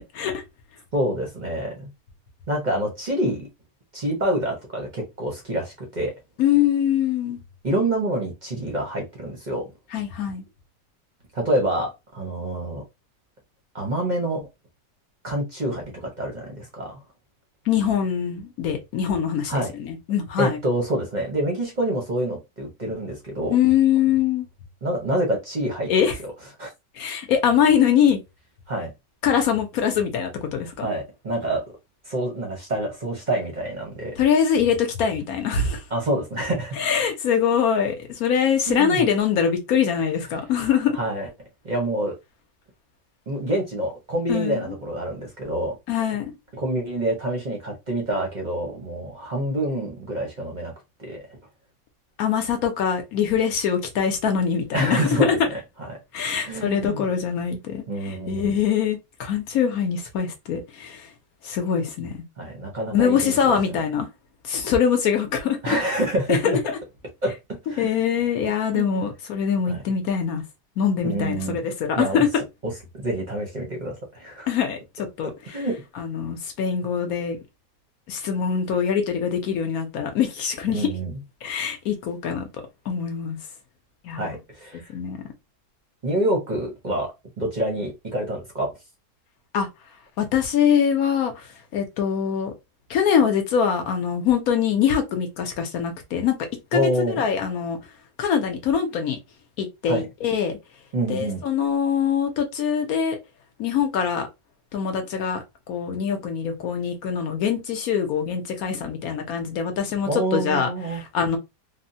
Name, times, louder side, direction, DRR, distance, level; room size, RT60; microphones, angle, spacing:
voice 1, 0.9-1.9 2.5-3.5 3.9-6.1 7.6-9.7 11.3-12.8 13.7-14.5 15.2-17.0 19.5-19.7 20.4-23.6 24.8-26.1 26.6-26.7 28.7-28.9 30.8-31.7 32.0-34.2 35.9-36.8 38.7-39.0 41.0-41.3 41.6-42.2 43.3-45.8 46.5-50.7 51.0-51.2 54.7-56.0 56.4-57.1 57.9-58.5 62.4-63.5 65.6-66.6 67.2-67.8 68.7-69.1 69.7-69.8 71.0-71.6 71.9-72.2 72.6-74.5 75.2-75.8 80.7-81.1 84.1-84.8 86.0-88.7 96.7-97.2 99.9-100.1 100.9-101.4 110.1-111.0, right 1 dB, 45° right, 0.6 m, -27 dB
voice 2, 6.4-7.4 9.9-10.4 17.7-19.5 19.8-20.6 23.5-24.5 25.9-26.2 27.0-28.2 29.2-30.9 34.2-35.8 36.8-41.0 44.3-44.7 45.9-46.3 52.2-55.4 56.1-61.1 61.4-62.2 62.9-64.1 64.4-65.8 66.3-66.8 67.8-70.4 70.8-72.3 74.5-75.6 76.0-77.4 78.1-80.9 81.4-82.5 82.9-83.4 84.0-84.3 84.9-85.2 89.5-89.7 90.2-91.5 91.7-92.5 92.9-96.4 96.7-96.8 97.1-97.8 98.2-99.2 99.6-100.6 101.1-103.2 103.6-104.3 104.7-111.4, left 8 dB, 65° left, 1.1 m, -23 dB
3.4 x 2.1 x 2.6 m
omnidirectional pair, 1.8 m